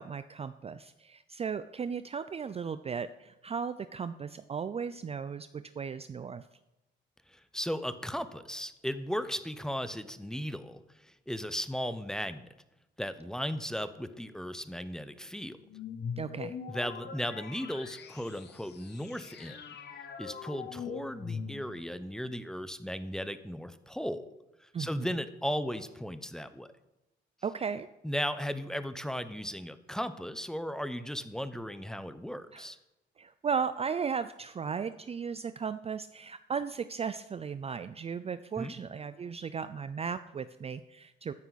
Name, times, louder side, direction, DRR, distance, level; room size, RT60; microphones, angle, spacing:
voice 1, 0.0-6.4 16.2-16.6 24.7-25.1 27.4-27.9 32.5-32.7 33.2-41.3, right 6 dB, 30° right, 13 dB, 0.4 m, -36 dB
voice 2, 7.5-10.8 11.3-12.5 13.0-15.6 16.7-19.6 20.2-24.3 24.8-26.7 28.0-32.8 38.6-38.7, equal, 5° left, 12 dB, 0.8 m, -36 dB
sound 1, 15.7-22.0, left 6 dB, 60° left, 1.1 m, -42 dB
14.0 x 9.5 x 4.1 m, 0.94 s
cardioid pair, 90°, 20 cm